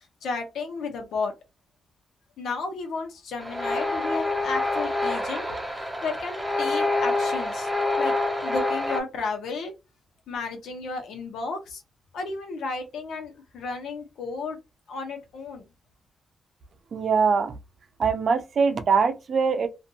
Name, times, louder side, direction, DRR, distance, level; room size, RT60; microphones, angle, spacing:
voice 1, 0.0-1.3 2.4-7.7 8.0-8.1 8.4-9.7 10.3-11.8 12.1-14.6 14.9-15.6, left 4 dB, 80° left, 1.0 m, -33 dB
sound 1, 3.4-9.0, left 2 dB, 5° right, 0.8 m, -27 dB
voice 2, 16.9-17.6 18.0-19.7, right 5 dB, 55° right, 0.5 m, -22 dB
2.5 x 2.5 x 2.7 m
cardioid pair, 110°, 0 cm